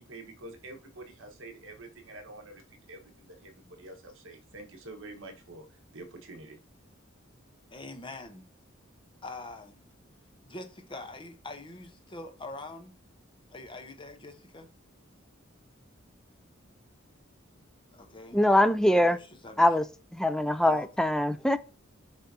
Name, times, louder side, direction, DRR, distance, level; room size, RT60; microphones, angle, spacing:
voice 1, 0.0-2.6 2.9-5.7 5.9-6.6, right 2 dB, 65° right, 1.4 m, -47 dB
voice 2, 7.7-8.5 9.2-9.8 10.4-13.0 13.5-14.7 17.9-18.4 18.9-19.7 20.6-20.9, left 3 dB, 25° left, 1.0 m, -43 dB
voice 3, 18.3-19.2 19.6-19.8 20.1-21.6, left 1 dB, 5° left, 0.3 m, -23 dB
10.0 x 3.5 x 2.8 m
head